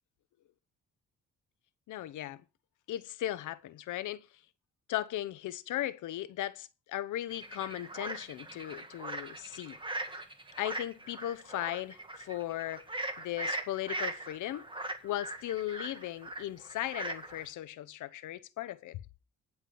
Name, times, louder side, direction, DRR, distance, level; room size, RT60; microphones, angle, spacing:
voice 1, 1.9-2.4 2.9-4.3 4.9-9.8 10.6-12.9 13.2-14.6 15.0-19.0, left 13 dB, 80° left, 0.9 m, -37 dB
sound 1, 7.3-17.5, right 2 dB, 15° right, 1.8 m, -40 dB
10.5 x 4.8 x 7.8 m
cardioid pair, 90°, 30 cm